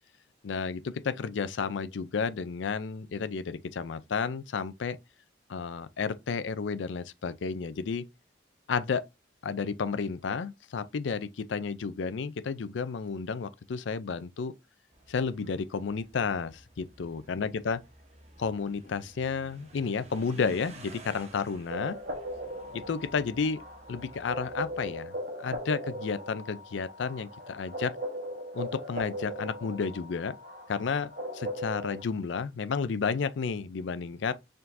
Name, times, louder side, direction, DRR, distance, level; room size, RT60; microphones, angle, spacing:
voice 1, 0.4-5.0 5.5-8.1 8.7-9.1 9.4-14.5 15.1-17.8 18.4-22.0 22.7-23.6 23.9-27.9 28.5-30.4 30.7-34.3, left 5 dB, 80° left, 0.4 m, -32 dB
sound 1, 14.9-25.0, right 1 dB, 35° right, 0.9 m, -53 dB
sound 2, 21.7-32.0, equal, 55° right, 1.1 m, -39 dB
4.6 x 3.7 x 2.6 m
head